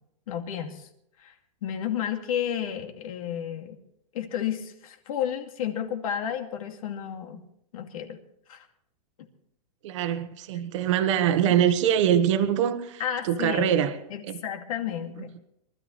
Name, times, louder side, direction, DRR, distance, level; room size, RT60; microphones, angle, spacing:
voice 1, 0.3-0.9 1.2-1.3 1.6-3.8 4.1-7.4 7.7-8.2 8.5-8.7 11.4-11.5 13.0-13.7 14.1-15.4, left 9 dB, 60° left, 5 dB, 2.5 m, -32 dB
voice 2, 9.8-13.9 14.3-14.4, right 9 dB, 50° right, 8 dB, 1.4 m, -23 dB
24.0 x 13.5 x 3.3 m, 0.73 s
supercardioid pair, 165°, 20 cm